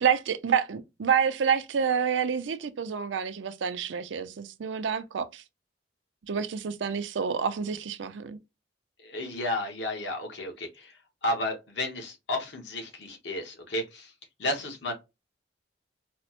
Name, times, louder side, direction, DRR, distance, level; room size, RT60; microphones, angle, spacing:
voice 1, 0.0-5.4 6.3-8.4, right 7 dB, 85° right, 0.5 m, -28 dB
voice 2, 9.0-14.1 14.4-14.9, left 1 dB, 70° left, 1.0 m, -32 dB
4.1 x 2.0 x 2.8 m
head